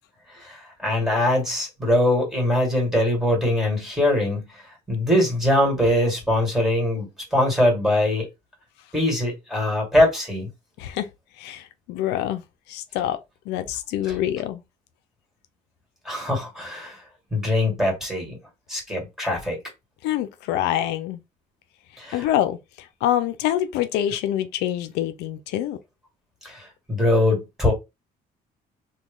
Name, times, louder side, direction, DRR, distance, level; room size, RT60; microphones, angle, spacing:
voice 1, 0.4-4.5 4.9-8.3 8.9-10.5 14.1-14.2 16.1-17.0 17.3-18.4 18.7-19.6 22.0-22.2 26.4-26.6 26.9-27.7, left 1 dB, 5° right, 1.9 m, -22 dB
voice 2, 10.8-11.1 11.4-12.4 12.7-13.2 13.5-14.6 20.0-21.2 22.1-25.8, left 11 dB, 85° left, 0.4 m, -26 dB
3.0 x 2.2 x 3.6 m
cardioid pair, 110°, 17 cm